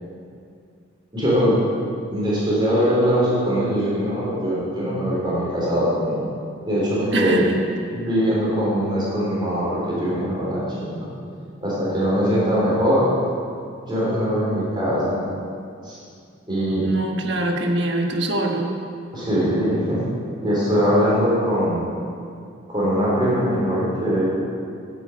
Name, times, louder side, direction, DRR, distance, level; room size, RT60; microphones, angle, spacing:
voice 1, 1.1-1.6 2.1-6.3 6.7-7.4 7.9-11.1 11.6-13.1 13.9-15.2 15.8-16.0 16.5-16.8 19.1-20.0 20.4-21.9 22.7-24.2, equal, 25° right, -7 dB, 4.0 m, -21 dB
voice 2, 7.1-7.6 16.8-18.8, right 1 dB, 60° right, 2 dB, 1.5 m, -23 dB
10.0 x 9.0 x 8.2 m, 2.3 s
head